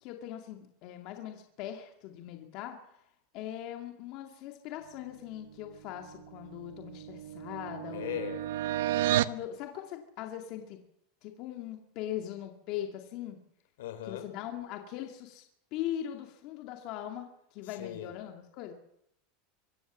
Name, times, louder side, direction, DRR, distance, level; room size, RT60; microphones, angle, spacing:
voice 1, 0.0-2.8 3.3-8.2 9.2-10.8 11.2-13.4 14.1-15.4 15.7-18.7, left 11 dB, 40° left, 4 dB, 2.3 m, -40 dB
sound 1, 6.2-9.4, right 14 dB, 70° right, 0.8 m, -32 dB
voice 2, 7.9-8.4 13.8-14.3 17.6-18.1, left 11 dB, 85° left, 9 dB, 4.4 m, -39 dB
25.0 x 15.5 x 7.5 m, 0.76 s
supercardioid pair, 175°, 0 cm